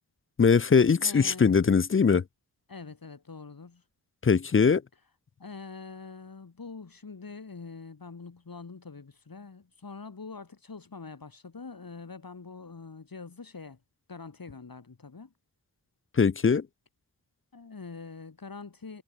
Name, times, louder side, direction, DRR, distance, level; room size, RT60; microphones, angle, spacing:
voice 1, 0.4-2.2 4.2-4.8 16.2-16.7, left 5 dB, 30° left, 0.6 m, -21 dB
voice 2, 1.0-1.6 2.7-3.8 5.4-13.8 14.1-15.3 17.5-19.0, left 4 dB, 55° left, 5.2 m, -44 dB
cardioid pair, 50°, 41 cm